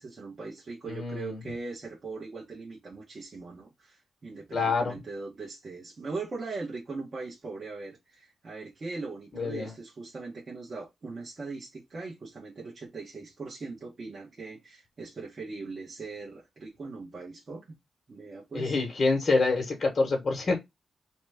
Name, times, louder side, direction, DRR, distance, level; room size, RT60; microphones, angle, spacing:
voice 1, 0.0-17.6 18.1-18.8, right 3 dB, 45° right, 1.0 m, -40 dB
voice 2, 0.9-1.4 4.5-4.9 9.3-9.7 18.5-20.6, left 3 dB, 45° left, 1.0 m, -26 dB
2.8 x 2.2 x 3.4 m
cardioid pair, 80°, 0 cm